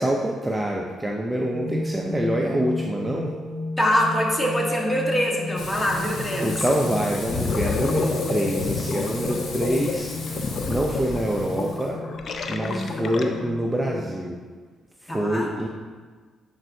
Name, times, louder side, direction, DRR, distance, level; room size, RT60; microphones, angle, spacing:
voice 1, 0.0-3.3 6.0-10.1 10.7-12.0 12.5-14.4 15.0-15.7, equal, 15° right, -1 dB, 0.6 m, -26 dB
sound 1, 1.4-14.2, left 1 dB, 35° right, 1.5 m, -34 dB
voice 2, 3.8-6.6 12.6-13.2 15.1-15.5, equal, 15° left, -1 dB, 1.4 m, -24 dB
Frying (food), 5.6-11.9, left 2 dB, 75° left, 1.5 m, -34 dB
Gurgling, 6.5-6.8 7.1-13.6, left 5 dB, 55° left, 0.5 m, -30 dB
10.5 x 4.4 x 2.7 m, 1.5 s
cardioid pair, 90°, 0 cm